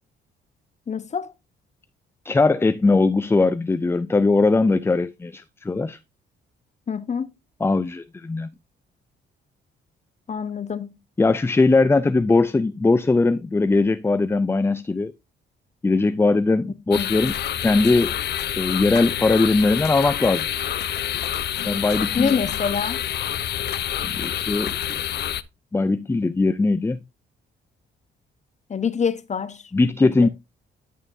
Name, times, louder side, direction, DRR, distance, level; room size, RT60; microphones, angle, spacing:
voice 1, 0.9-1.3 6.9-7.3 10.3-11.0 16.9-17.1 22.1-23.0 28.7-29.6 30.0-30.1, left 6 dB, 35° left, 0.9 m, -25 dB
voice 2, 2.2-6.0 7.6-8.5 11.2-15.1 15.8-17.3 17.6-18.2 18.6-20.5 21.6-22.3 24.0-25.0 25.7-27.0 29.7-30.3, left 3 dB, 10° left, 0.4 m, -20 dB
sound 1, 16.9-25.4, left 11 dB, 60° left, 0.6 m, -27 dB
11.0 x 6.4 x 2.6 m
cardioid pair, 90°, 20 cm